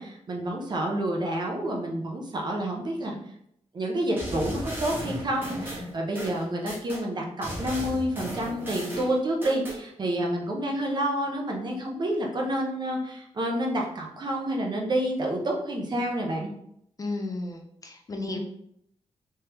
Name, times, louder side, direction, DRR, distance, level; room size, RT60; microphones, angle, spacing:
voice 1, 0.0-3.1 3.7-16.5 18.3-18.4, right 1 dB, 40° right, 0 dB, 0.7 m, -29 dB
sound 1, 4.2-7.0 7.4-9.8, equal, 15° right, 1.2 m, -35 dB
voice 2, 17.0-18.4, left 2 dB, 30° left, 3 dB, 0.4 m, -34 dB
3.4 x 3.3 x 2.9 m, 0.71 s
wide cardioid pair, 170°, 12 cm